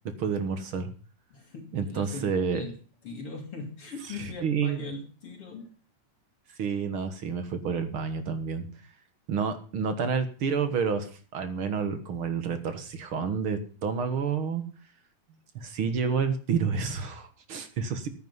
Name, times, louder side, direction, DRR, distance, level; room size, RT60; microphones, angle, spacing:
voice 1, 0.2-0.9 1.7-2.6 4.1-4.8 6.6-8.7 9.3-14.7 15.6-18.1, right 6 dB, 50° right, 9 dB, 1.9 m, -29 dB
voice 2, 1.3-5.7, left 3 dB, 50° left, 4 dB, 3.0 m, -40 dB
15.0 x 9.7 x 5.5 m, 0.39 s
omnidirectional pair, 3.5 m